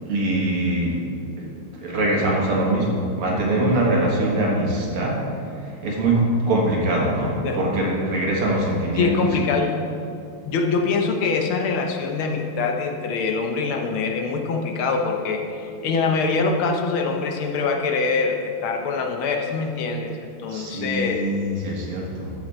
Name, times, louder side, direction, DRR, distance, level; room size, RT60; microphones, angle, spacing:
voice 1, 0.1-1.0 1.4-5.2 5.8-9.2 20.5-22.3, right 1 dB, 85° right, -2 dB, 2.7 m, -23 dB
voice 2, 7.1-7.6 9.0-9.8 10.4-21.2, left 4 dB, 75° left, 3 dB, 1.7 m, -24 dB
14.0 x 6.2 x 4.3 m, 2.5 s
omnidirectional pair, 2.4 m